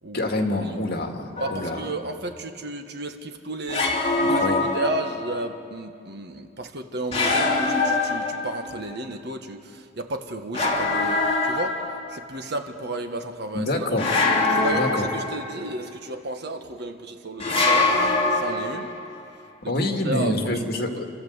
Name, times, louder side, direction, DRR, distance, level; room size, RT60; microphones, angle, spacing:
voice 1, 0.1-1.9 4.3-4.7 13.5-14.0 14.7-15.1 19.6-21.1, left 1 dB, 55° left, 3 dB, 2.2 m, -26 dB
voice 2, 1.3-11.8 12.1-14.0 14.5-18.9 19.6-20.4 20.7-20.9, right 2 dB, 65° right, 6 dB, 1.5 m, -33 dB
sound 1, 1.4-1.9 3.7-5.4 7.1-8.8 10.5-12.2 14.0-15.7 17.4-19.0, left 3 dB, 35° left, 2.6 m, -24 dB
29.5 x 13.0 x 8.2 m, 2.4 s
head